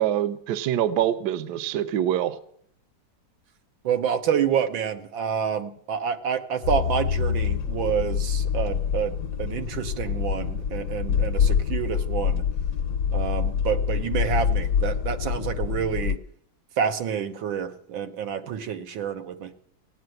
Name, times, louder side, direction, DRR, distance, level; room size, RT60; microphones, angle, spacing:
voice 1, 0.0-2.4, right 11 dB, 65° right, 12 dB, 1.2 m, -25 dB
voice 2, 3.8-12.4 13.1-16.2 16.8-19.5, right 8 dB, 85° right, 7 dB, 1.9 m, -28 dB
sound 1, 6.6-16.2, left 7 dB, 65° left, 1.2 m, -26 dB
16.0 x 9.6 x 7.8 m, 0.67 s
omnidirectional pair, 2.1 m